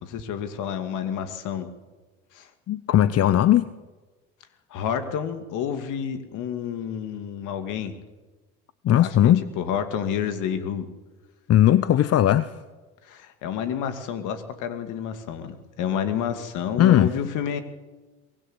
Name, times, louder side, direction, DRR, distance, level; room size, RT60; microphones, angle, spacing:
voice 1, 0.0-1.7 2.3-2.5 4.7-8.0 9.0-10.9 13.0-17.6, left 8 dB, 60° left, 8 dB, 2.5 m, -29 dB
voice 2, 2.7-3.7 8.8-9.5 11.5-12.5 16.8-17.1, left 12 dB, 45° left, 15 dB, 0.9 m, -18 dB
23.5 x 17.5 x 8.1 m, 1.2 s
hypercardioid pair, 65°, 34 cm